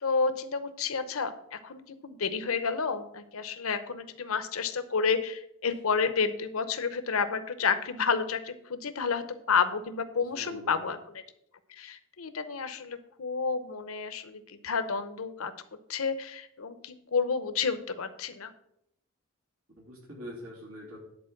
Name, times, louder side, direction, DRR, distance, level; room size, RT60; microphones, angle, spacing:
voice 1, 0.0-11.0 11.8-15.5 15.9-18.5, left 5 dB, 90° left, 11 dB, 0.8 m, -30 dB
voice 2, 10.2-10.8 19.8-21.0, equal, 80° right, -3 dB, 2.8 m, -44 dB
10.0 x 4.5 x 7.3 m, 0.76 s
head